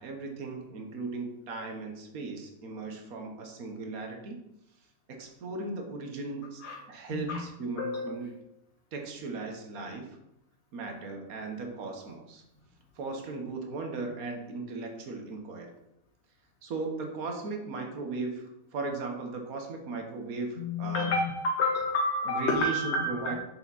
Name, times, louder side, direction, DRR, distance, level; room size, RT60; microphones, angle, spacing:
voice 1, 0.0-4.4 5.1-6.6 6.9-8.3 8.9-10.2 10.7-12.4 12.9-15.7 16.6-21.1 22.3-23.3, right 3 dB, 75° right, 3 dB, 1.6 m, -37 dB
voice 2, 7.1-7.4 7.8-8.2 20.6-23.3, left 2 dB, 50° left, 0 dB, 1.2 m, -29 dB
7.2 x 6.5 x 4.1 m, 0.85 s
omnidirectional pair, 1.5 m